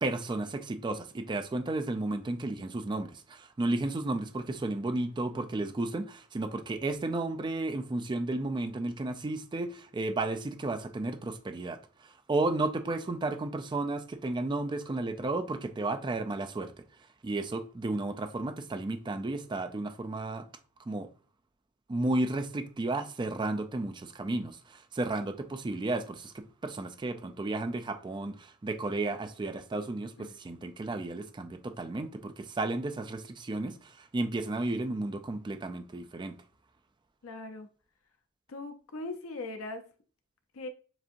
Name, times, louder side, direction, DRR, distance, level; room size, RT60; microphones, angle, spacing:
voice 1, 0.0-16.7 17.2-20.5 20.9-21.1 21.9-36.4, right 2 dB, 20° right, 0.3 m, -33 dB
voice 2, 37.2-37.7 38.5-39.8 40.5-40.7, left 2 dB, 75° left, 0.6 m, -40 dB
7.2 x 2.6 x 2.5 m
head